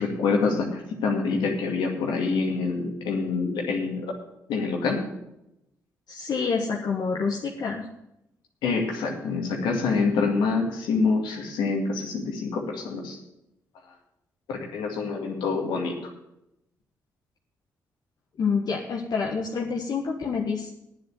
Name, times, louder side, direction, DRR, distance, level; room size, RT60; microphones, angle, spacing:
voice 1, 0.0-4.1 4.5-5.0 8.6-13.2 14.5-15.9, left 4 dB, 85° left, 1 dB, 2.2 m, -26 dB
voice 2, 6.1-7.9 18.4-20.7, left 5 dB, 60° left, -1 dB, 1.4 m, -27 dB
9.4 x 7.9 x 9.0 m, 0.85 s
supercardioid pair, 55°, 8 cm